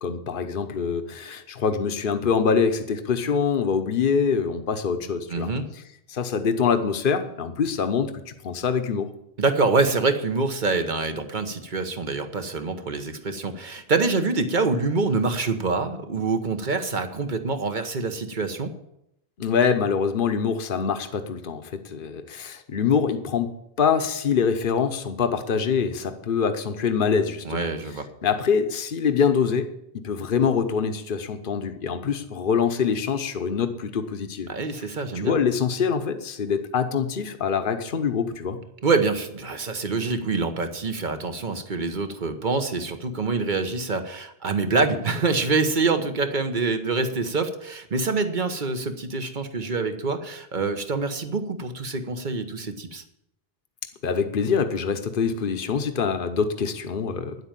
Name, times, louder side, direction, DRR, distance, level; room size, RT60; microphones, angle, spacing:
voice 1, 0.0-5.5 6.1-9.1 19.4-23.5 23.8-27.7 28.2-29.7 29.9-34.5 34.8-34.9 35.1-38.6 54.0-57.4, left 6 dB, 60° left, 9 dB, 1.1 m, -24 dB
voice 2, 5.3-5.7 9.4-18.7 27.4-28.1 34.5-35.4 38.8-53.0, right 3 dB, 50° right, 8 dB, 1.3 m, -25 dB
10.5 x 8.2 x 9.0 m, 0.80 s
omnidirectional pair, 1.0 m